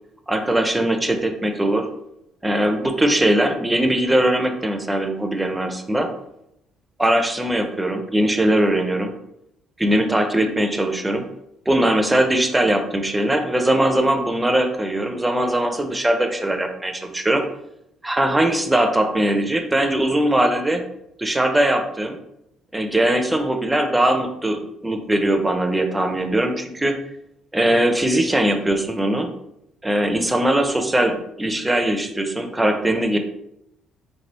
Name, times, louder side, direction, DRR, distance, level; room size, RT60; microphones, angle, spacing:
voice 1, 0.3-1.9 2.4-6.1 7.0-9.1 9.8-11.3 11.7-17.4 18.0-20.8 21.2-22.2 22.7-27.0 27.5-29.3 29.8-33.2, right 1 dB, 15° right, 6 dB, 0.6 m, -20 dB
3.8 x 3.3 x 3.0 m, 0.81 s
hypercardioid pair, 55°, 0 cm